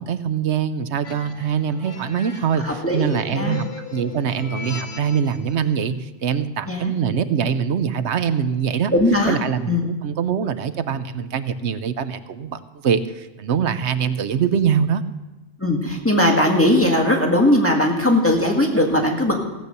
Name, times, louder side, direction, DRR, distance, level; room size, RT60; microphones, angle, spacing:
voice 1, 0.0-2.6 2.9-3.7 3.9-8.9 9.3-15.0, right 7 dB, 70° right, 12 dB, 1.0 m, -23 dB
sound 1, 1.0-5.5, left 4 dB, 40° left, 1.2 m, -37 dB
voice 2, 2.6-3.6 6.7-6.9 8.9-9.4 9.7-9.9 15.6-19.4, left 1 dB, 10° left, 0 dB, 1.7 m, -19 dB
16.0 x 8.3 x 6.7 m, 1.1 s
omnidirectional pair, 1.2 m